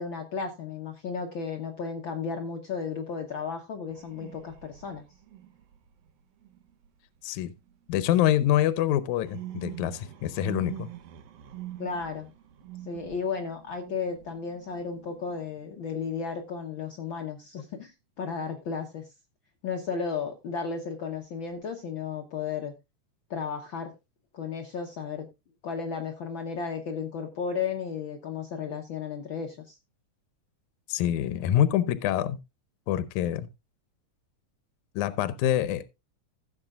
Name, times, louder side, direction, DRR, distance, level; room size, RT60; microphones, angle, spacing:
voice 1, 0.0-5.0 11.8-12.3 12.8-19.0 19.6-22.7 23.3-23.9 24.3-25.3 25.6-29.8, left 5 dB, 60° left, 1.3 m, -34 dB
sound 1, 3.9-8.0 8.5-16.4 21.2-21.6, right 13 dB, 65° right, 1.8 m, -45 dB
voice 2, 7.2-7.5 7.9-10.9 30.9-32.4 32.9-33.5 35.0-35.8, left 11 dB, 80° left, 2.1 m, -25 dB
16.0 x 7.7 x 2.4 m
omnidirectional pair, 3.5 m